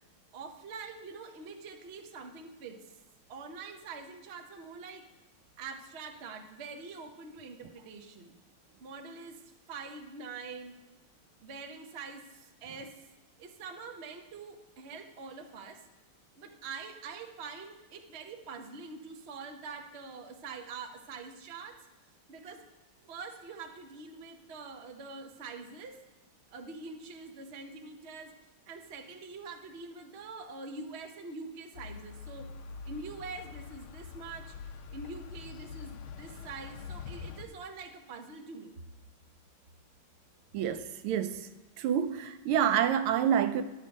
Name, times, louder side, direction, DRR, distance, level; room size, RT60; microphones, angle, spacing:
voice 1, 0.3-2.8 3.3-5.1 5.6-8.3 8.8-9.4 9.7-10.7 11.4-13.0 13.4-15.8 16.4-21.8 22.3-22.6 23.1-26.0 26.5-28.3 28.7-32.5 32.8-34.5 34.9-38.7, right 4 dB, 50° right, 0.8 m, -44 dB
sound 1, 31.7-37.5, left 5 dB, 80° left, 1.6 m, -44 dB
voice 2, 40.5-41.5 41.8-43.6, right 9 dB, 80° right, 1.5 m, -28 dB
10.5 x 7.3 x 5.2 m
omnidirectional pair, 2.3 m